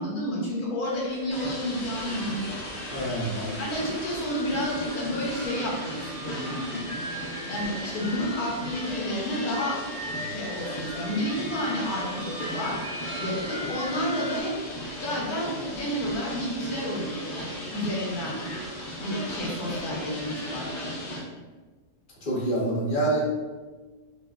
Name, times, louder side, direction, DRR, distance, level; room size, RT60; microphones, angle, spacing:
voice 1, 0.0-2.6 3.4-6.9 7.5-9.8 10.3-12.8 13.2-14.5 15.0-17.2 17.7-18.4 19.0-20.7, equal, 75° left, -3 dB, 1.3 m, -30 dB
sound 1, 0.8-14.4, right 1 dB, 50° right, 1.3 m, -40 dB
sound 2, 1.3-21.2, equal, 60° left, 0.4 m, -36 dB
voice 2, 2.9-3.5 22.2-23.3, right 2 dB, 40° left, -5 dB, 0.9 m, -26 dB
4.2 x 2.5 x 2.4 m, 1.3 s
omnidirectional pair, 1.6 m